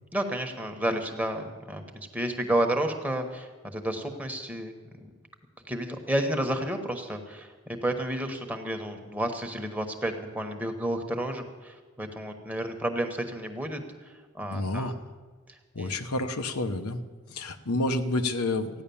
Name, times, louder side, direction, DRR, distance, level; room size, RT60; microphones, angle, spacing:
voice 1, 0.1-4.7 5.0-5.1 5.7-14.9 15.8-15.9, right 1 dB, 5° right, 4 dB, 1.1 m, -31 dB
voice 2, 14.5-14.9 15.7-17.0 17.3-18.8, left 2 dB, 90° left, 6 dB, 1.0 m, -29 dB
15.0 x 10.0 x 7.0 m, 1.5 s
head